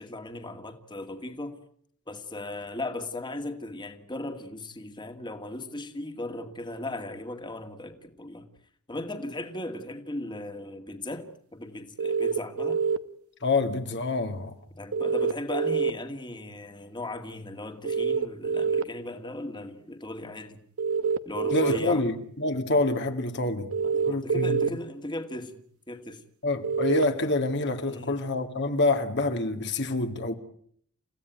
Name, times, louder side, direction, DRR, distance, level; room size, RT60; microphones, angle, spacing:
voice 1, 0.0-1.5 2.1-8.5 8.9-12.8 14.8-20.6 21.3-22.0 23.8-25.6 25.9-26.2 27.9-28.2, left 1 dB, 20° left, 2.2 m, -37 dB
sound 1, 12.0-13.0 14.9-15.9 17.8-18.8 20.8-21.8 23.7-24.7 26.6-27.0, right 5 dB, 75° right, 1.1 m, -26 dB
voice 2, 13.4-14.5 21.5-23.7 24.1-24.6 26.4-30.3, left 2 dB, 50° left, 2.2 m, -27 dB
30.0 x 16.0 x 9.4 m
head